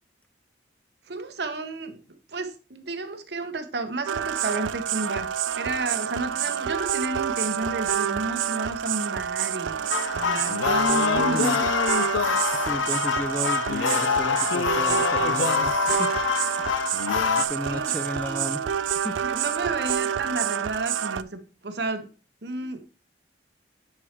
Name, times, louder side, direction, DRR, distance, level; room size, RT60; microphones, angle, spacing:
voice 1, 1.1-2.0 2.3-9.9 10.1-11.7 17.6-18.7 19.2-22.1 22.4-22.8, right 2 dB, 60° right, 0.9 m, -31 dB
sound 1, 4.1-21.2, right 9 dB, 85° right, 0.4 m, -28 dB
sound 2, 9.9-17.5, left 7 dB, 85° left, 0.4 m, -25 dB
voice 2, 12.5-16.1 16.4-16.9 17.4-18.6 19.0-19.2, left 1 dB, 10° left, 0.3 m, -34 dB
9.7 x 4.6 x 3.0 m
head